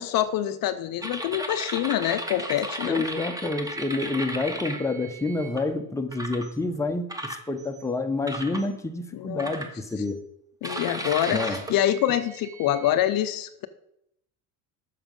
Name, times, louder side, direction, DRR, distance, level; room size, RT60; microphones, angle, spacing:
voice 1, 0.0-3.0 9.1-9.5 10.6-13.7, left 11 dB, 55° left, 0.7 m, -26 dB
sound 1, 1.0-5.6 6.1-6.5 7.1-7.8 8.3-8.7 9.4-10.1 10.6-13.0, right 1 dB, 10° right, 1.2 m, -35 dB
voice 2, 2.8-10.3 11.3-11.6, left 2 dB, 5° left, 0.8 m, -28 dB
7.1 x 6.6 x 5.3 m
supercardioid pair, 90°, 42 cm